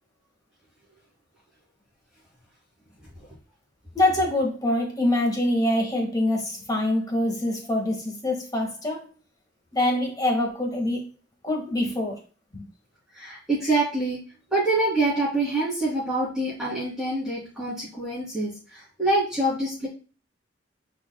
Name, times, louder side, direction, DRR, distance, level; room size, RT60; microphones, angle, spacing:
voice 1, 4.0-9.0 9.7-11.0 11.4-12.2 12.5-12.6, left 1 dB, 20° left, 0 dB, 1.9 m, -25 dB
voice 2, 13.1-14.2 14.5-19.9, right 2 dB, 5° right, -10 dB, 3.2 m, -26 dB
10.0 x 4.6 x 2.3 m, 0.35 s
head